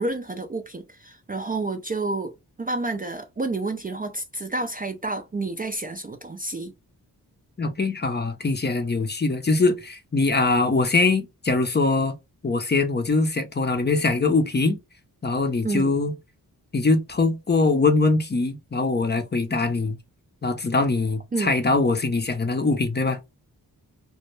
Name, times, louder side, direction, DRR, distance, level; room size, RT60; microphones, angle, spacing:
voice 1, 0.0-6.7 15.6-15.9 21.3-21.5, right 3 dB, 25° right, 0.4 m, -29 dB
voice 2, 7.6-12.1 12.4-14.8 15.2-16.1 16.7-20.0 20.4-23.2, left 3 dB, 25° left, 0.5 m, -22 dB
2.1 x 2.1 x 3.0 m
cardioid pair, 55°, 39 cm